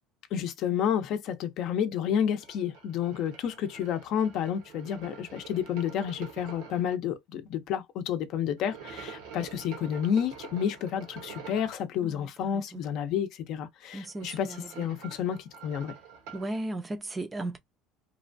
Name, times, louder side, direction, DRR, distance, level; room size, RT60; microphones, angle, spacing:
voice 1, 0.3-15.9, left 8 dB, 55° left, 0.6 m, -30 dB
sound 1, 2.4-7.0 8.6-11.8 13.9-16.5, right 6 dB, 85° right, 1.0 m, -46 dB
voice 2, 13.9-14.9 16.3-17.6, right 2 dB, 15° right, 0.5 m, -36 dB
3.0 x 2.2 x 2.6 m
cardioid pair, 140°, 0 cm